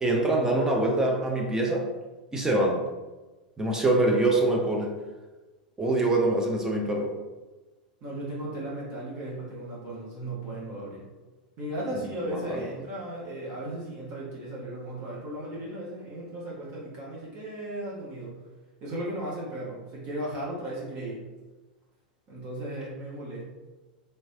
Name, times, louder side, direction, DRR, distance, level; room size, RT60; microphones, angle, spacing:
voice 1, 0.0-1.8 2.3-2.8 3.6-4.9 5.8-7.1 12.3-12.4, right 2 dB, 15° right, 0 dB, 0.6 m, -24 dB
voice 2, 8.0-11.1 11.6-18.4 18.8-21.3 22.3-23.4, right 1 dB, 45° right, -7 dB, 1.2 m, -36 dB
3.3 x 3.1 x 2.8 m, 1.2 s
figure-of-eight pair, 90°, 5 cm